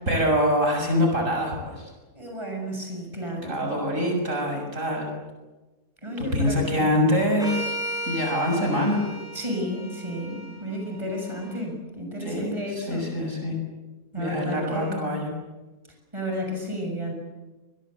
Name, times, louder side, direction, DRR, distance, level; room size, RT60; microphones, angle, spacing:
voice 1, 0.1-1.9 3.4-5.1 6.2-7.6 8.1-9.0 12.2-13.6 14.2-15.3, equal, 60° right, 2 dB, 7.1 m, -24 dB
voice 2, 2.1-3.6 6.0-6.9 9.3-13.1 14.1-15.1 16.1-17.1, equal, 20° right, 2 dB, 7.0 m, -32 dB
sound 1, 7.4-11.6, equal, ahead, 7.1 m, -35 dB
27.5 x 22.5 x 8.1 m, 1.1 s
omnidirectional pair, 1.5 m